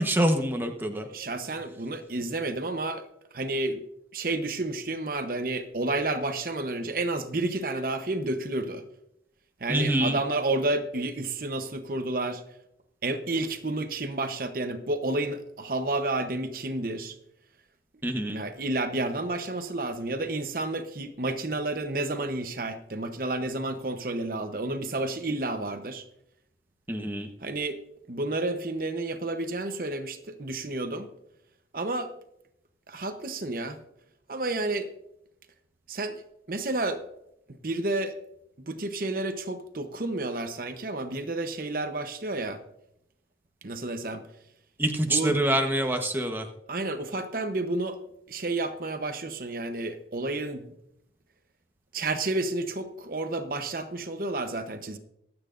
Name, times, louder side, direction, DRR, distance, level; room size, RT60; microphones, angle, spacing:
voice 1, 0.0-1.1 9.7-10.2 18.0-18.4 26.9-27.3 44.8-46.5, right 1 dB, 10° right, 4 dB, 1.1 m, -26 dB
voice 2, 1.1-3.1 3.3-3.8 4.1-8.8 9.6-12.4 13.0-17.2 18.3-26.1 27.4-27.8 28.1-31.1 31.7-32.1 32.9-33.8 34.3-34.9 35.9-36.2 36.5-37.0 37.5-38.2 38.6-42.6 43.6-44.2 45.1-45.4 46.7-48.0 48.3-50.7 51.9-55.0, right 2 dB, 55° right, 8 dB, 0.9 m, -30 dB
24.5 x 9.0 x 2.6 m, 0.79 s
head